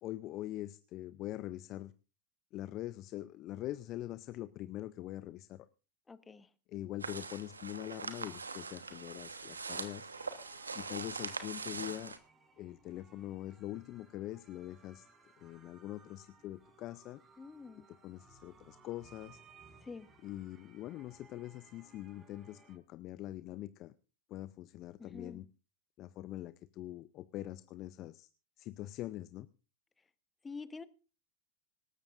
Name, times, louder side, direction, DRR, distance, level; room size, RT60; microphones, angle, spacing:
voice 1, 0.0-1.9 2.5-5.7 6.7-10.1 10.7-12.1 12.6-15.1 15.4-17.2 17.9-19.4 20.2-23.9 24.3-25.5 26.0-28.3 28.6-29.5, left 14 dB, 45° left, 14 dB, 0.6 m, -43 dB
voice 2, 6.1-6.5 17.4-17.9 19.8-20.1 25.0-25.4 30.4-30.9, left 4 dB, 15° left, 14 dB, 1.1 m, -47 dB
sound 1, 7.0-12.2, right 4 dB, 90° right, 1.2 m, -42 dB
sound 2, 10.1-22.8, right 4 dB, 25° right, 5.0 m, -62 dB
25.5 x 13.5 x 2.6 m, 0.33 s
hypercardioid pair, 90°, 0 cm